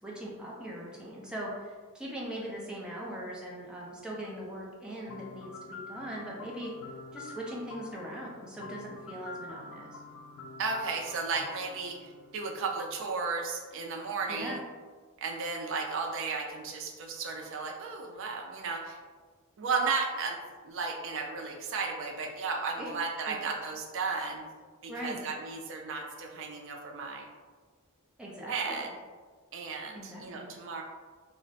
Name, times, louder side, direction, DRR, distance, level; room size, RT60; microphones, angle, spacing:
voice 1, 0.0-6.7 7.1-10.0 14.3-14.6 22.8-22.9 23.3-23.4 24.9-25.2 28.2-28.8 29.9-30.6, equal, 5° right, -5 dB, 0.5 m, -40 dB
sound 1, 5.1-12.9, left 3 dB, 80° left, 0.4 m, -47 dB
voice 2, 10.6-14.6 15.2-19.0 19.6-20.4 20.6-24.4 24.8-27.3 28.5-28.9 29.5-30.8, right 4 dB, 65° right, 2 dB, 0.4 m, -34 dB
2.4 x 2.1 x 3.8 m, 1.5 s
head